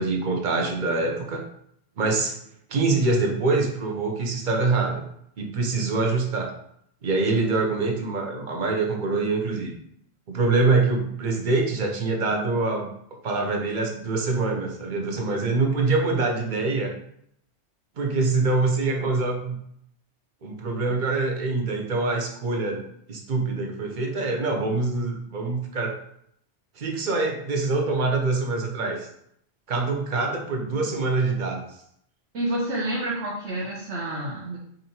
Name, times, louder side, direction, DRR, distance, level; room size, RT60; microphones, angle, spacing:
voice 1, 0.0-1.4 2.0-2.4 2.7-5.0 5.4-6.5 7.0-9.7 10.3-12.9 13.2-16.9 18.0-19.6 20.4-26.0 26.8-29.1 29.7-31.7, right 3 dB, 50° right, 1 dB, 0.8 m, -25 dB
voice 2, 32.3-34.6, right 1 dB, 80° right, -5 dB, 1.1 m, -29 dB
5.0 x 2.6 x 2.8 m, 0.70 s
omnidirectional pair, 1.1 m